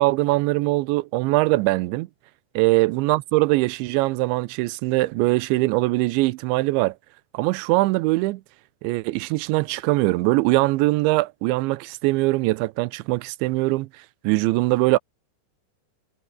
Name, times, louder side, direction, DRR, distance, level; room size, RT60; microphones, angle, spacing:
voice 1, 0.0-2.1 2.6-6.9 7.3-8.4 8.8-13.9 14.2-15.0, right 21 dB, 85° right, 3.1 m, -22 dB
omnidirectional pair, 5.2 m